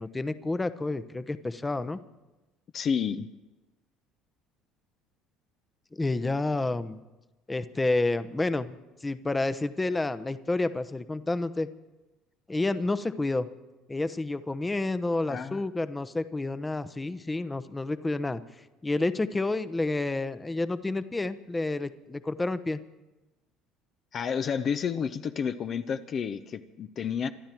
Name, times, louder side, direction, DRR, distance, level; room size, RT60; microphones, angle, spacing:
voice 1, 0.0-2.0 5.9-7.0 7.5-8.8 9.0-11.7 12.5-13.5 13.9-18.4 18.8-22.8, left 2 dB, 15° left, 13 dB, 0.9 m, -29 dB
voice 2, 2.7-3.3 15.3-15.6 24.1-27.3, left 7 dB, 45° left, 9 dB, 0.7 m, -30 dB
25.5 x 11.5 x 4.6 m, 1.1 s
hypercardioid pair, 65°, 0 cm